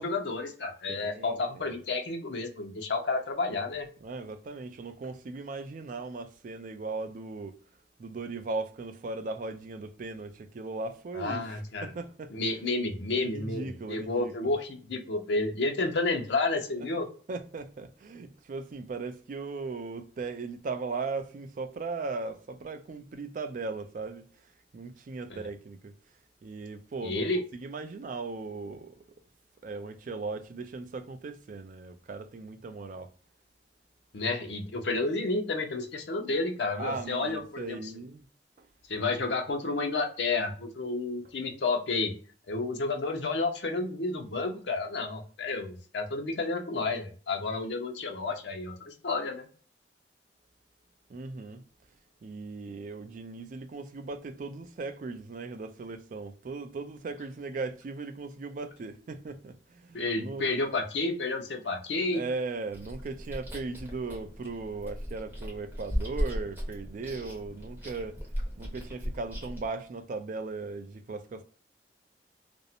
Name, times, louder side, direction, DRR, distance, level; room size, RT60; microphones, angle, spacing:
voice 1, 0.0-3.9 11.1-11.9 12.3-17.1 25.3-25.4 27.0-27.4 34.1-37.9 38.9-42.1 42.5-49.5 59.9-62.2, left 3 dB, 80° left, 0.6 m, -31 dB
voice 2, 0.9-1.6 4.0-7.6 8.0-12.6 13.1-14.6 16.8-16.9 17.3-24.2 24.7-25.9 26.4-27.2 27.5-29.0 29.6-33.1 36.8-38.2 38.6-38.7 51.1-51.6 52.2-60.4 62.1-68.2 68.6-71.4, right 3 dB, 50° right, 0.3 m, -38 dB
Chewing mastication, 62.7-69.7, equal, 10° right, 0.9 m, -36 dB
2.5 x 2.0 x 2.7 m
head